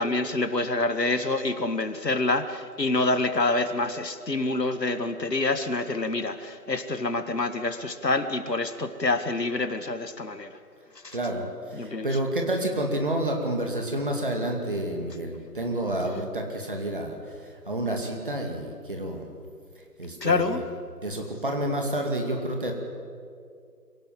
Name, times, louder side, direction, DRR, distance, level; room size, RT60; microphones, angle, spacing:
voice 1, 0.0-10.5 11.0-11.2 11.7-12.1 20.2-20.6, left 2 dB, 85° left, 10 dB, 1.9 m, -27 dB
voice 2, 11.1-19.3 20.0-20.6 21.0-22.7, right 1 dB, 30° right, 2 dB, 2.4 m, -29 dB
25.0 x 17.5 x 7.6 m, 2.3 s
figure-of-eight pair, 170°, 48 cm